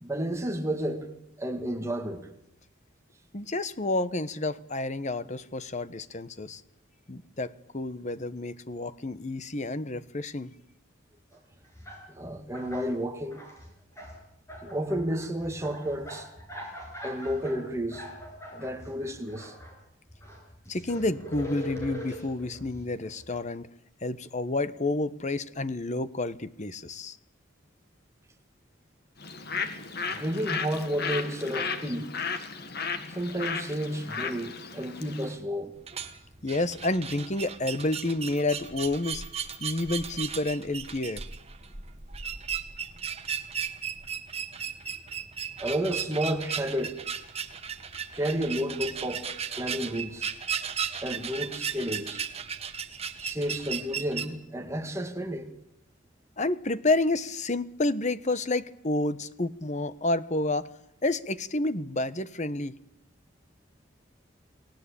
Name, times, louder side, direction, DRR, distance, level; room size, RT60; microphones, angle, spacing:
voice 1, 0.0-1.1 1.4-2.3 12.1-13.4 14.6-16.3 17.0-18.1 18.5-19.6 30.2-32.1 33.1-35.7 45.6-47.0 48.1-49.3 49.6-50.3 51.0-52.2 53.2-55.5, equal, 15° right, 2.4 m, -31 dB
voice 2, 3.3-6.6 7.1-10.5 20.7-23.7 24.0-27.2 36.4-39.2 39.6-41.2 56.4-60.7 61.0-62.8, left 2 dB, 35° left, 1.1 m, -29 dB
sound 1, 11.3-11.4 11.7-12.9 13.2-14.2 14.5-19.7 20.1-23.4, equal, 15° left, 7.3 m, -42 dB
Bird, 29.2-35.3, left 5 dB, 55° left, 2.1 m, -34 dB
sound 2, 35.8-54.3, right 7 dB, 30° right, 1.7 m, -36 dB
29.5 x 19.0 x 8.7 m
head